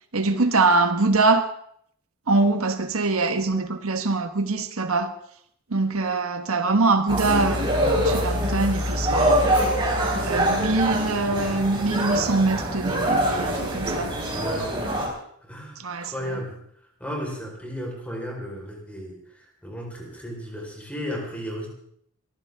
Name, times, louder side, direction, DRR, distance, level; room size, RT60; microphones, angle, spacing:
voice 1, 0.1-1.5 2.3-5.1 5.7-9.4 10.2-14.1 15.8-16.1, right 3 dB, 85° right, 7 dB, 1.3 m, -23 dB
sound 1, 7.1-15.1, equal, 25° right, 4.6 m, -24 dB
voice 2, 14.3-16.6 17.0-21.7, equal, 5° left, -1 dB, 4.3 m, -35 dB
23.0 x 15.0 x 3.6 m, 0.67 s
head